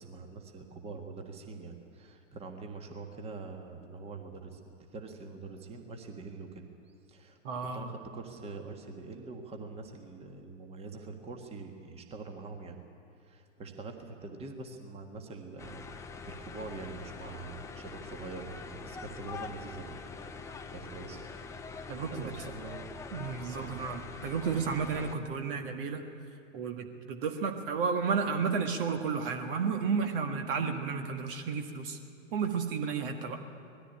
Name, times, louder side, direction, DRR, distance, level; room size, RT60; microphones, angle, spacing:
voice 1, 0.0-6.6 7.1-7.4 7.7-12.8 13.2-15.9 16.3-20.0 20.3-21.2 22.1-23.1 23.6-23.8, right 3 dB, 15° right, 4 dB, 1.6 m, -44 dB
voice 2, 7.4-7.9 21.9-22.3 23.1-26.0 26.5-32.0 32.3-33.4, right 5 dB, 45° right, 5 dB, 1.6 m, -32 dB
sound 1, 15.6-25.2, left 4 dB, 10° left, 0.7 m, -44 dB
19.5 x 14.0 x 10.0 m, 2.5 s
figure-of-eight pair, 110°, 38 cm